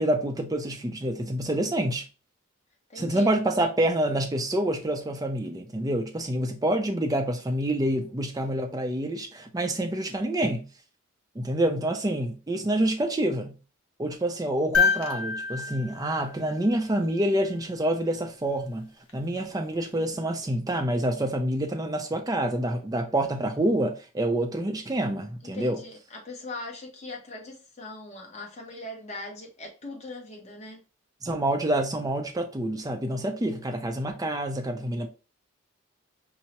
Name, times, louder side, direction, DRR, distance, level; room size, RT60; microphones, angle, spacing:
voice 1, 0.0-2.0 3.0-10.7 11.4-13.6 14.0-25.8 31.2-35.1, right 1 dB, 15° right, 0.4 m, -27 dB
voice 2, 2.9-3.3 25.5-30.8, left 2 dB, 30° left, 0.9 m, -40 dB
sound 1, 14.7-17.1 19.1-19.2, left 5 dB, 70° left, 0.8 m, -27 dB
5.5 x 2.0 x 2.9 m
head